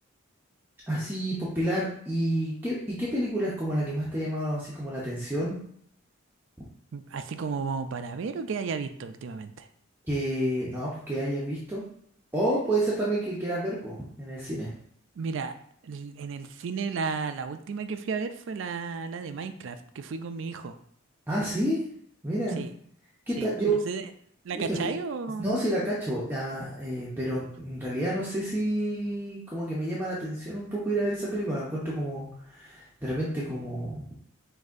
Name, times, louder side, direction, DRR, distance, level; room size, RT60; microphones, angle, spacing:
voice 1, 0.9-5.6 10.1-11.8 12.3-14.7 21.3-21.8 22.2-22.6 23.3-23.8 24.5-24.8 25.4-34.0, right 1 dB, 10° right, -7 dB, 0.7 m, -29 dB
voice 2, 6.9-9.7 15.2-15.5 15.8-20.8 22.6-22.7 23.4-23.5 23.9-24.1 24.4-25.6, right 5 dB, 65° right, 9 dB, 0.4 m, -33 dB
6.1 x 2.7 x 2.5 m, 0.64 s
head